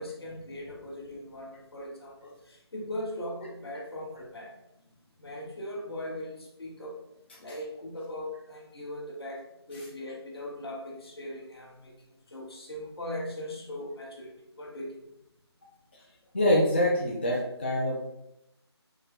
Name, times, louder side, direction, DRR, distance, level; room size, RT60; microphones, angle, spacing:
voice 1, 0.0-4.6 5.2-7.0 7.4-15.1, left 1 dB, 65° left, -2 dB, 1.4 m, -39 dB
voice 2, 16.3-18.0, left 1 dB, 25° left, -4 dB, 0.4 m, -25 dB
5.4 x 2.1 x 3.5 m, 0.85 s
figure-of-eight pair, 170°, 14 cm